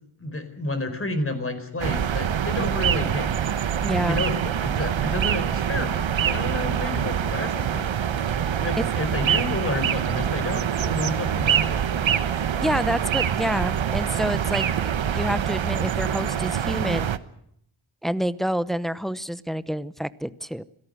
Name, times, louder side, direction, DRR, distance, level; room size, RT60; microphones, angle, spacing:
voice 1, 0.2-7.9 8.6-11.8, left 2 dB, 25° left, 9 dB, 4.7 m, -30 dB
sound 1, 1.8-17.2, right 8 dB, 65° right, 1.2 m, -25 dB
voice 2, 3.8-4.3 8.8-8.9 12.6-14.6 15.1-17.1 18.0-20.6, equal, ahead, 14 dB, 0.8 m, -28 dB
26.0 x 17.5 x 7.9 m, 0.73 s
wide cardioid pair, 110°, 50 cm